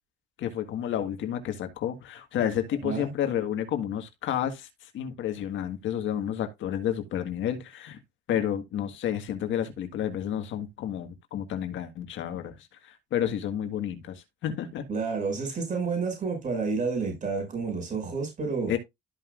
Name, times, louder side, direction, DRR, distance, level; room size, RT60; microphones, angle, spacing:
voice 1, 0.4-8.0 8.3-14.8 18.7-18.8, left 10 dB, 65° left, 1.7 m, -31 dB
voice 2, 2.8-3.1 14.9-18.7, right 4 dB, 40° right, 5.9 m, -30 dB
13.5 x 5.4 x 2.5 m
supercardioid pair, 85°, 21 cm